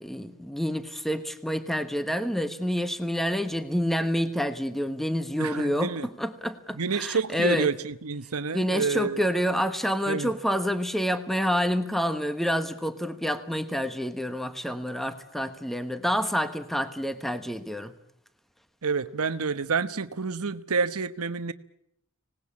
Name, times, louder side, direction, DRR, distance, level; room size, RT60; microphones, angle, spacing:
voice 1, 0.0-5.9 6.2-7.7 8.5-17.9, equal, ahead, 10 dB, 1.2 m, -28 dB
voice 2, 5.4-6.1 6.7-9.3 10.1-10.3 18.8-21.5, right 5 dB, 75° right, 12 dB, 1.1 m, -28 dB
25.5 x 19.0 x 8.7 m, 0.74 s
head